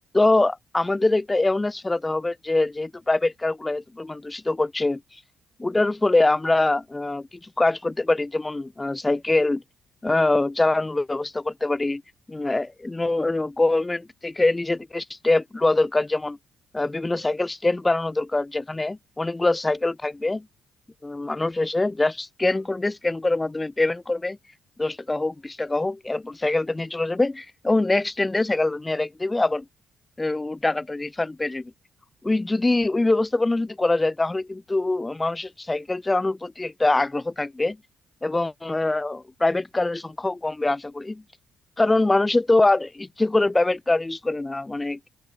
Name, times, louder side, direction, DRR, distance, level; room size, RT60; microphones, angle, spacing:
voice 1, 0.1-5.0 5.6-9.6 10.0-12.0 12.3-16.4 16.7-20.5 21.0-24.4 24.8-29.6 30.2-31.7 32.2-37.8 38.2-41.2 41.8-45.1, left 2 dB, 15° left, 0.9 m, -24 dB
open air
cardioid pair, 90°, 0 cm